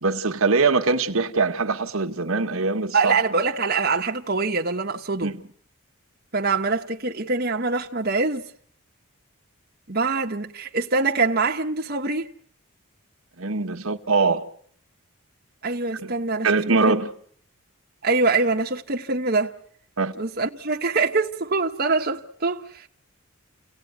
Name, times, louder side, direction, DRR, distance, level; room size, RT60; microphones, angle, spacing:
voice 1, 0.0-3.2 5.2-5.4 13.4-14.4 16.0-16.1 16.4-17.1 20.0-20.1, right 4 dB, 70° right, 1.6 m, -22 dB
voice 2, 2.9-5.3 6.3-8.4 9.9-12.3 15.6-16.5 16.9-17.0 18.0-19.5 20.2-22.9, right 3 dB, 45° right, 1.3 m, -24 dB
29.5 x 18.0 x 9.5 m
head